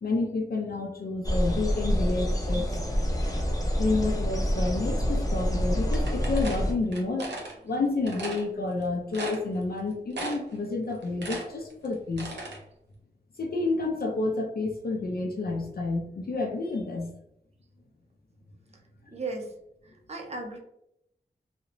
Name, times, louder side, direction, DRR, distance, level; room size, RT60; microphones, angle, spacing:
voice 1, 0.0-2.8 3.8-7.3 7.6-12.4 13.4-17.1, left 3 dB, 65° left, 1 dB, 0.5 m, -29 dB
sound 1, 1.2-6.7, equal, 20° left, 0.6 m, -27 dB
sound 2, 5.9-7.5 8.1-8.4 8.8-8.9 9.1-9.8 10.1-10.6 10.9-12.6, right 2 dB, 90° right, 0.7 m, -36 dB
voice 2, 19.1-19.5 19.8-20.6, right 3 dB, 40° right, 1 dB, 0.6 m, -36 dB
2.9 x 2.1 x 2.5 m, 0.78 s
wide cardioid pair, 70°, 17 cm